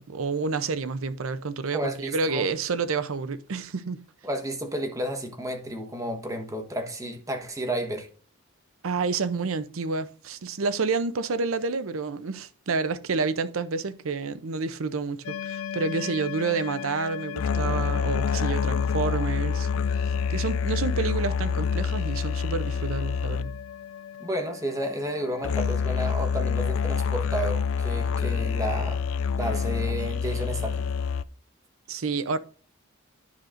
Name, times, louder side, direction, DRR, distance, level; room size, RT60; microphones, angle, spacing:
voice 1, 0.0-4.0 8.8-23.5 31.9-32.4, right 4 dB, 85° right, 0.6 m, -29 dB
voice 2, 1.7-2.5 4.2-8.1 24.2-29.0 29.4-30.8, right 1 dB, 15° right, 1.2 m, -31 dB
sound 1, 15.2-31.2, left 6 dB, 80° left, 0.4 m, -28 dB
10.0 x 6.4 x 2.6 m
head